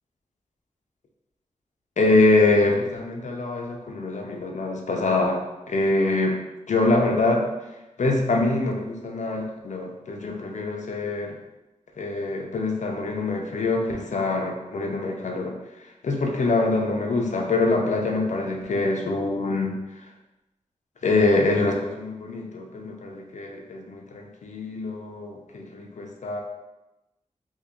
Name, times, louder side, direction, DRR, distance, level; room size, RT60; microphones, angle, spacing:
voice 1, 2.0-6.4 6.7-7.5 8.0-11.4 12.0-15.6 16.0-19.8 21.0-26.4, left 2 dB, 70° left, 1 dB, 0.6 m, -24 dB
2.7 x 2.7 x 3.5 m, 1.0 s
wide cardioid pair, 95°, 13 cm